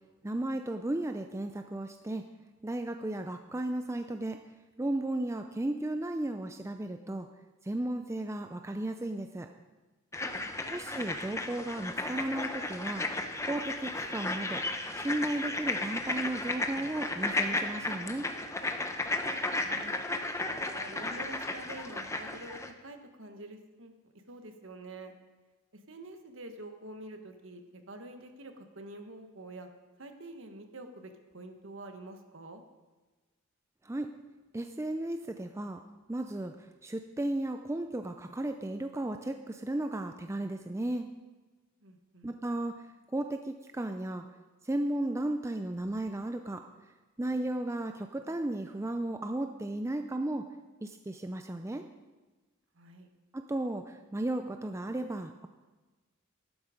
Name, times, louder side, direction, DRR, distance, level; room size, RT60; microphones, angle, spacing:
voice 1, 0.2-2.3 2.6-4.4 4.8-7.3 7.6-9.5 10.7-13.0 13.5-14.6 15.0-18.3 33.8-34.1 34.5-35.8 36.1-41.1 42.2-42.9 43.1-44.2 44.6-46.6 47.2-50.4 50.8-51.8 53.3-55.5, right 1 dB, 10° right, 6 dB, 0.4 m, -34 dB
sound 1, 10.1-22.7, left 2 dB, 15° left, 0.7 m, -34 dB
voice 2, 10.3-11.0 19.6-20.1 20.6-23.9 24.3-25.1 25.9-29.7 30.0-32.6 41.8-42.3 52.7-53.1, right 2 dB, 60° right, 6 dB, 1.4 m, -47 dB
13.5 x 12.0 x 5.1 m, 1.2 s
head